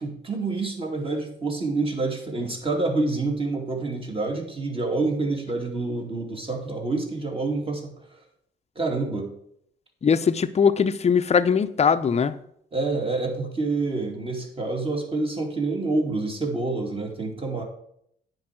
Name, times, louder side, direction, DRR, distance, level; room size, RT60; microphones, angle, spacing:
voice 1, 0.0-8.2 8.8-9.3 12.7-17.6, right 3 dB, 30° right, 1 dB, 2.5 m, -27 dB
voice 2, 10.0-12.4, left 6 dB, 35° left, 11 dB, 0.6 m, -21 dB
9.6 x 4.6 x 7.5 m, 0.72 s
cardioid pair, 90°, 20 cm